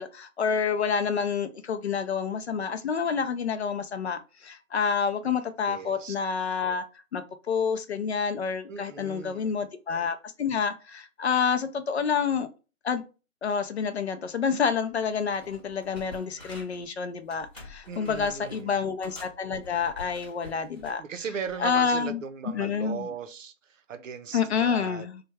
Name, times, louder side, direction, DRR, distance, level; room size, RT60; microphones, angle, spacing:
voice 1, 0.0-6.9 7.1-12.5 12.8-13.0 13.4-21.0 21.6-22.2 22.5-23.1 24.3-25.2, left 6 dB, 55° left, 0.5 m, -28 dB
voice 2, 5.7-6.2 8.7-9.6 17.9-18.8 21.0-25.1, right 6 dB, 65° right, 0.7 m, -38 dB
sound 1, 14.9-15.0 15.3-16.9 17.3-18.6 19.0-21.0 21.5-21.7, left 2 dB, 5° left, 1.0 m, -47 dB
3.2 x 2.2 x 3.3 m
hypercardioid pair, 165°, 41 cm